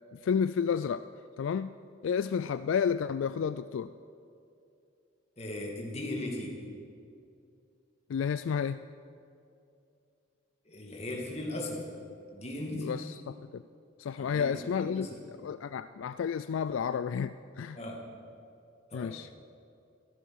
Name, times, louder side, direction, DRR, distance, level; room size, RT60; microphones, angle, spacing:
voice 1, 0.1-1.0 1.4-1.7 2.0-3.9 8.1-8.8 12.7-13.6 14.0-17.8 18.9-19.4, left 7 dB, 70° left, 13 dB, 0.3 m, -31 dB
voice 2, 5.4-6.5 10.7-11.8 12.3-13.0 14.2-15.2 17.7-18.0 18.9-19.1, left 1 dB, 30° left, -1 dB, 2.3 m, -38 dB
14.0 x 13.5 x 6.3 m, 2.5 s
head